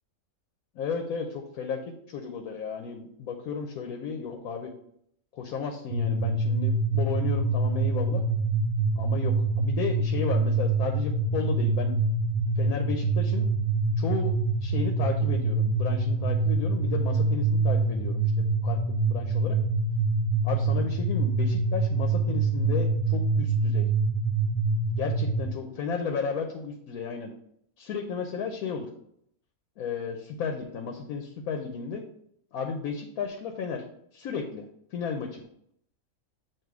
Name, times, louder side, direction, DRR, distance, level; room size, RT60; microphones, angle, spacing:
voice 1, 0.8-1.8 2.1-4.7 5.3-8.2 9.0-11.9 12.6-13.5 14.0-19.6 20.4-23.8 24.9-27.3 27.8-28.9 29.8-32.0 32.5-33.8 34.1-34.6 34.9-35.4, left 6 dB, 90° left, 3 dB, 1.2 m, -33 dB
sound 1, 5.9-25.5, right 3 dB, 65° right, 0.7 m, -25 dB
7.6 x 2.6 x 4.8 m, 0.70 s
omnidirectional pair, 1.5 m